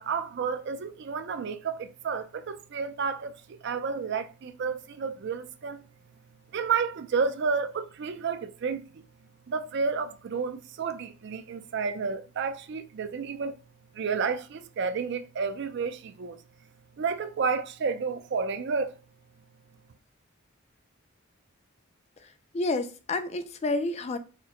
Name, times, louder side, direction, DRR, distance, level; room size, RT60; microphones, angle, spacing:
voice 1, 0.0-5.8 6.5-9.0 9.5-13.5 13.9-16.4 17.0-19.0, right 5 dB, 55° right, 0.4 m, -31 dB
voice 2, 22.2-24.2, left 2 dB, 30° left, 0.3 m, -30 dB
4.3 x 2.1 x 3.6 m
head